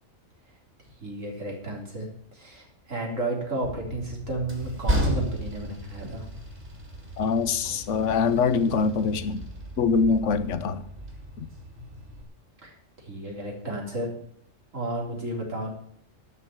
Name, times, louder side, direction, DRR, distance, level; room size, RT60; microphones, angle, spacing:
voice 1, 1.0-6.3 12.6-14.1 14.7-15.7, right 2 dB, 80° right, 0 dB, 4.0 m, -32 dB
Train, 3.6-12.2, equal, 40° right, 3.5 m, -34 dB
voice 2, 7.2-9.4 9.8-10.8 11.4-11.5, left 5 dB, 70° left, 13 dB, 1.2 m, -24 dB
12.0 x 6.9 x 9.1 m, 0.65 s
omnidirectional pair, 1.3 m